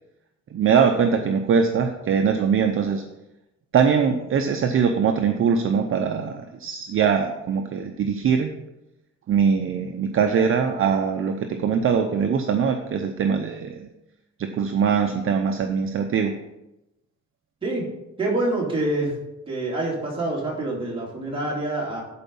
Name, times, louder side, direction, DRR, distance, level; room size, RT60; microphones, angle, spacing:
voice 1, 0.5-3.0 3.7-8.5 9.3-13.9 14.4-16.3, right 6 dB, 45° right, 5 dB, 0.7 m, -22 dB
voice 2, 18.2-19.1 19.5-22.0, right 2 dB, 20° right, -4 dB, 2.8 m, -26 dB
11.0 x 4.7 x 5.4 m, 0.94 s
cardioid pair, 160°, 29 cm